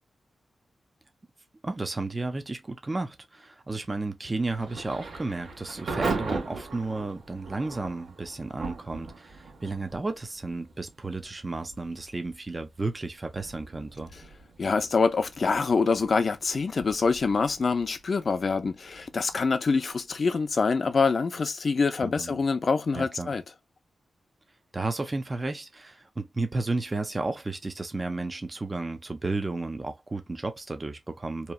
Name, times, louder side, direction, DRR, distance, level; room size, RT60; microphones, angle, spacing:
voice 1, 1.6-14.1 22.0-22.4 22.9-23.3 24.7-31.5, right 3 dB, 25° right, 0.5 m, -33 dB
Thunder / Rain, 4.4-21.1, right 4 dB, 75° right, 1.2 m, -40 dB
voice 2, 14.6-23.4, left 4 dB, 50° left, 0.4 m, -25 dB
2.9 x 2.3 x 2.3 m
wide cardioid pair, 100°, 0 cm